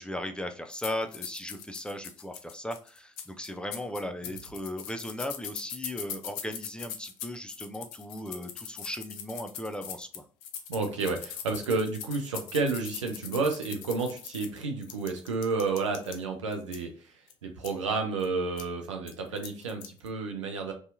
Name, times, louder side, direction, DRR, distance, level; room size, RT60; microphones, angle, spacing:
voice 1, 0.0-10.2, left 1 dB, 5° left, 6 dB, 0.4 m, -37 dB
sound 1, 0.7-16.2 16.5-16.8 17.3-17.4 17.6-17.7 18.2-18.3 18.6-18.7 19.1-20.1, left 8 dB, 70° left, 0.4 m, -41 dB
voice 2, 10.7-17.1 17.4-20.7, right 4 dB, 90° right, 4 dB, 0.4 m, -31 dB
2.7 x 2.3 x 2.5 m, 0.40 s
hypercardioid pair, 50°, 15 cm